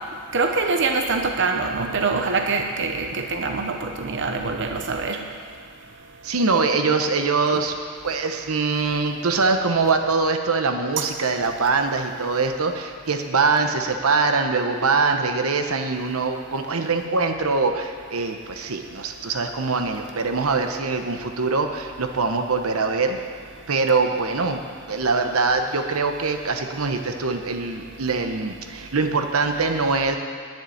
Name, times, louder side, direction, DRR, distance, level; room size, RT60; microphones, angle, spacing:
voice 1, 0.3-5.2 11.0-11.1, right 4 dB, 55° right, 4 dB, 0.8 m, -24 dB
voice 2, 6.2-7.7 8.0-23.2 23.7-24.6 24.9-30.2, right 4 dB, 85° right, 5 dB, 1.0 m, -23 dB
10.5 x 7.5 x 9.2 m, 2.2 s
head